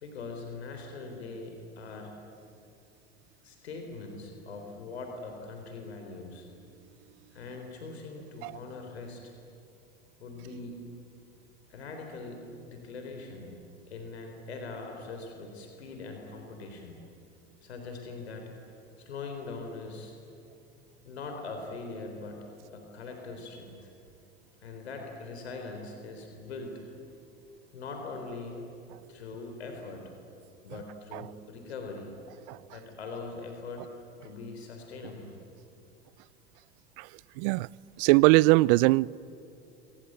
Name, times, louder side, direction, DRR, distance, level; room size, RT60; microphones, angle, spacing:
voice 1, 0.0-2.2 3.4-6.5 7.3-9.2 10.2-10.8 11.7-13.6 13.9-17.0 17.6-18.5 19.0-20.2 21.0-23.9 24.6-26.9 27.7-28.6 29.1-30.1 30.6-32.1 32.7-33.9 34.2-35.3, left 3 dB, 85° left, 4.0 m, -41 dB
voice 2, 37.4-37.7 38.0-39.1, right 22 dB, 65° right, 0.6 m, -21 dB
26.5 x 24.0 x 9.0 m
hypercardioid pair, 75°, 31 cm